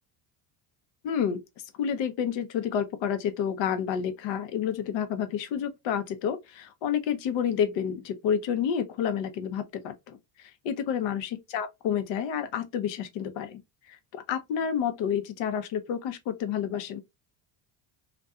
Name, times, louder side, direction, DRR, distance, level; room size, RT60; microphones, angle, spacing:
voice 1, 1.0-1.4 1.8-13.6 14.1-17.0, left 8 dB, 65° left, 0.7 m, -29 dB
2.6 x 2.2 x 2.3 m
supercardioid pair, 95°, 50 cm